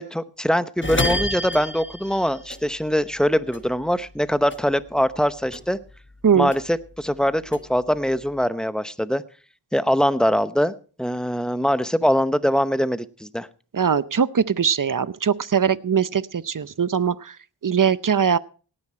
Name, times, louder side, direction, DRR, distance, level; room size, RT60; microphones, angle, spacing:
voice 1, 0.0-5.8 6.3-9.2 9.7-10.7 11.0-13.5, equal, ahead, 13 dB, 0.8 m, -22 dB
sound 1, 0.8-3.3 3.5-5.2 5.5-6.9 7.3-8.4, left 1 dB, 25° left, 1.3 m, -30 dB
voice 2, 13.7-17.3 17.6-18.4, right 7 dB, 45° right, 17 dB, 0.7 m, -21 dB
17.5 x 9.9 x 4.4 m, 0.40 s
wide cardioid pair, 40°, 45 cm